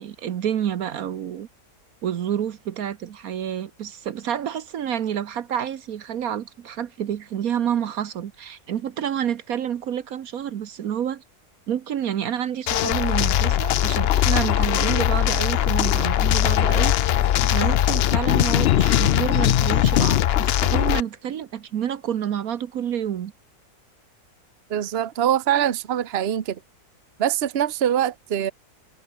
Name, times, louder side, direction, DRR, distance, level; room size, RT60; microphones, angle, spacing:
voice 1, 0.0-1.5 2.0-11.2 11.7-17.1 17.4-23.3, right 9 dB, 70° right, 1.3 m, -29 dB
sound 1, 12.7-21.0, left 11 dB, 75° left, 0.5 m, -20 dB
voice 2, 24.7-26.6 27.2-28.5, right 10 dB, 45° right, 1.1 m, -23 dB
omnidirectional pair, 1.7 m